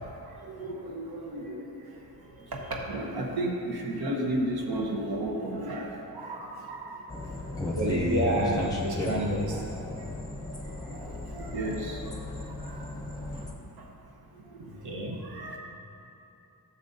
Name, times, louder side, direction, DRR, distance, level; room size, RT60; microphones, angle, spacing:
voice 1, 0.5-1.8 2.5-7.0 10.9-12.0 12.6-12.8 14.5-14.6 15.2-15.6, right 1 dB, 80° right, -1 dB, 1.1 m, -33 dB
sound 1, 7.1-13.5, left 1 dB, 10° left, 0.8 m, -34 dB
voice 2, 7.7-9.6 14.8-15.2, right 1 dB, 55° right, -2 dB, 1.1 m, -28 dB
12.5 x 7.0 x 2.7 m, 2.8 s
wide cardioid pair, 140°, 37 cm